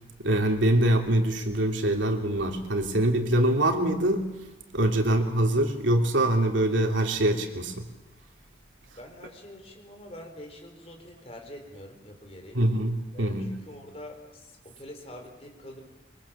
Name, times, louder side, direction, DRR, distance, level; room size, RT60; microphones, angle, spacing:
voice 1, 0.2-4.3 4.7-7.9 12.5-13.5, right 1 dB, 90° right, 3 dB, 3.1 m, -24 dB
voice 2, 9.0-12.6 13.1-15.8, left 1 dB, 30° left, 3 dB, 4.3 m, -45 dB
25.0 x 23.5 x 7.4 m, 1.0 s
head